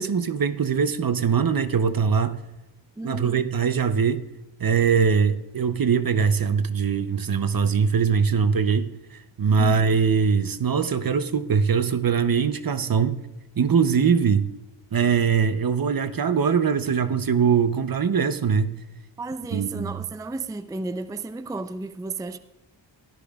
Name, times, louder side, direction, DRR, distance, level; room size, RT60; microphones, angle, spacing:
voice 1, 0.0-2.4 3.0-4.3 4.6-8.9 9.4-13.2 13.6-14.5 14.9-18.8 19.5-19.9, right 6 dB, 50° right, 0.7 m, -22 dB
voice 2, 3.0-3.5 9.6-9.8 19.2-22.4, right 3 dB, 10° right, 0.4 m, -33 dB
16.5 x 12.5 x 2.3 m
wide cardioid pair, 70°, 45 cm